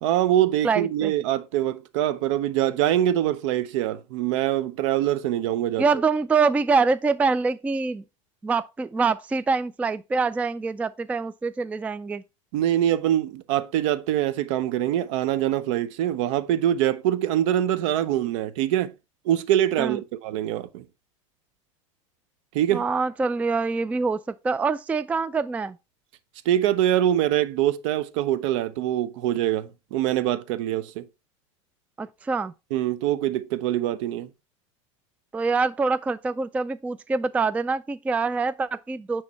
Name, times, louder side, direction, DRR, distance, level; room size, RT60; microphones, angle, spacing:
voice 1, 0.0-5.8 12.5-18.9 19.2-20.8 22.5-22.8 26.5-31.1 32.7-34.3, right 12 dB, 65° right, 0.8 m, -24 dB
voice 2, 0.6-1.1 5.8-8.0 8.4-12.2 19.8-20.0 22.7-25.8 32.0-32.5 35.3-39.2, right 4 dB, 10° right, 0.3 m, -25 dB
9.6 x 3.2 x 4.1 m
hypercardioid pair, 105°, 17 cm